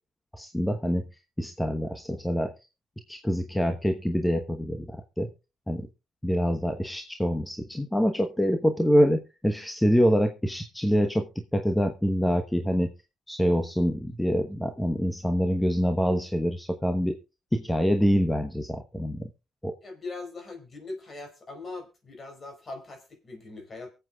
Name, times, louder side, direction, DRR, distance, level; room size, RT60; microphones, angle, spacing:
voice 1, 0.3-1.0 1.4-2.5 3.1-5.3 5.7-5.9 6.2-11.3 11.5-12.9 13.3-17.2 17.5-19.2 19.6-19.7, equal, 5° left, 5 dB, 1.1 m, -25 dB
voice 2, 19.8-23.9, left 3 dB, 35° left, 5 dB, 4.4 m, -41 dB
23.5 x 8.0 x 2.4 m, 0.28 s
cardioid pair, 85°, 0 cm